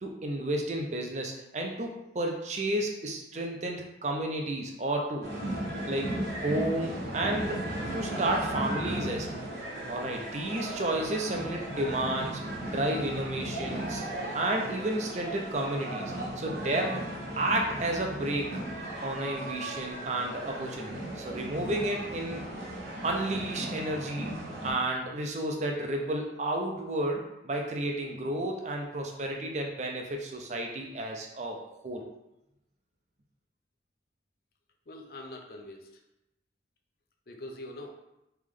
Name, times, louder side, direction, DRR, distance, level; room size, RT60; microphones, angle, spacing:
voice 1, 0.0-5.3 5.8-7.6 7.9-9.3 9.9-14.0 14.3-17.0 17.4-18.6 19.0-22.4 23.0-24.3 24.6-32.0, right 1 dB, 40° right, 1 dB, 0.6 m, -32 dB
sound 1, 5.2-24.7, right 1 dB, 60° right, 1.1 m, -36 dB
voice 2, 34.9-36.0 37.3-37.9, left 1 dB, 55° left, 3 dB, 0.5 m, -43 dB
3.3 x 3.1 x 3.7 m, 0.90 s
head